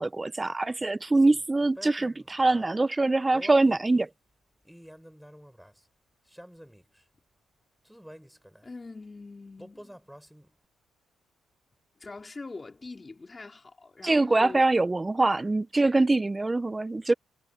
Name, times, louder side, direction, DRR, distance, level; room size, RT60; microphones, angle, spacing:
voice 1, 0.0-4.1 14.0-17.1, right 2 dB, 20° right, 0.4 m, -24 dB
sound 1, 1.1-2.7 3.3-4.1 4.6-5.8 6.3-7.0 7.8-8.7 9.6-10.6, equal, ahead, 4.1 m, -49 dB
voice 2, 8.6-10.0 12.0-14.7, left 3 dB, 25° left, 3.5 m, -43 dB
cardioid pair, 90°, 0 cm